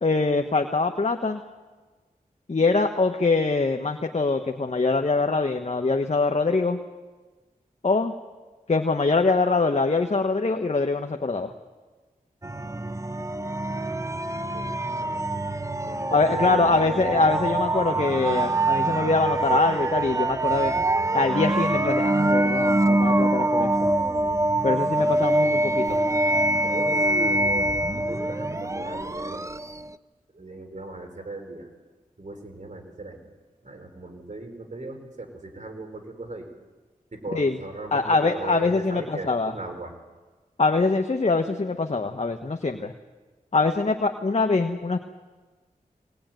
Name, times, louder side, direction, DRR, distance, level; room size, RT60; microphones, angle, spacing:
voice 1, 0.0-1.4 2.5-6.8 7.8-8.2 8.7-11.5 16.1-20.8 21.1-23.7 24.6-26.0 37.3-37.5 37.9-39.5 40.6-42.9 43.5-45.0, left 3 dB, 45° left, 5 dB, 1.3 m, -23 dB
sound 1, 12.4-29.9, right 1 dB, 20° right, 0.8 m, -24 dB
voice 2, 13.9-14.7 15.0-15.3 15.8-17.0 26.6-29.4 30.3-31.7 32.2-33.2 33.6-36.5 37.1-39.9, right 2 dB, 55° right, 4 dB, 4.6 m, -38 dB
23.5 x 19.0 x 9.2 m, 1.3 s
cardioid pair, 45°, 15 cm